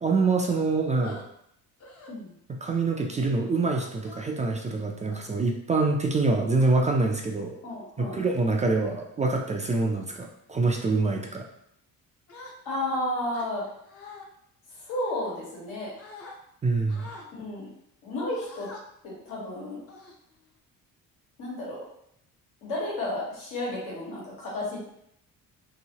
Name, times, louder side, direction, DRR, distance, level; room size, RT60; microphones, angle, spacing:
voice 1, 0.0-1.2 2.6-7.6 8.0-11.4 16.6-17.1, right 3 dB, 20° right, 1 dB, 0.3 m, -25 dB
sound 1, 1.0-1.2 1.8-2.1 2.6-3.0 4.0-4.5 5.1-5.4 6.1-6.7 7.5-7.7 8.3-8.6 9.1-9.4 9.8-10.2 10.7-11.0 12.3-12.9 13.3-14.3 14.9-15.7 16.0-16.4 16.9-17.3 18.3-18.8 19.3-19.4 19.9-20.6, left 3 dB, 40° left, 0.6 m, -47 dB
voice 2, 7.6-8.2 12.6-13.6 14.8-15.9 17.4-17.7 18.0-18.7 19.0-19.8 21.4-21.8 22.6-24.8, left 1 dB, 85° left, -5 dB, 1.4 m, -32 dB
2.9 x 2.7 x 2.8 m, 0.74 s
cardioid pair, 100°, 37 cm